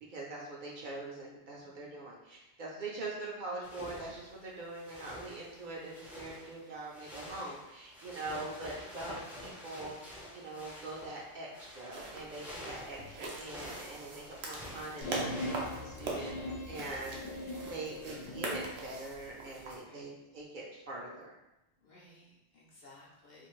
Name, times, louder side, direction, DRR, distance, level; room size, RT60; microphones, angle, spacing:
voice 1, 0.1-16.4 16.6-21.4, right 2 dB, 60° right, -4 dB, 0.7 m, -43 dB
voice 2, 1.6-2.0 6.3-6.7 19.8-20.2 21.8-23.5, left 1 dB, 50° left, -5 dB, 0.7 m, -60 dB
sound 1, 3.6-16.3, equal, ahead, 0.4 m, -49 dB
sound 2, 11.9-19.8, right 3 dB, 90° right, 0.9 m, -43 dB
sound 3, 15.0-18.8, left 1 dB, 85° left, 0.8 m, -40 dB
2.6 x 2.4 x 3.0 m, 0.92 s
omnidirectional pair, 1.1 m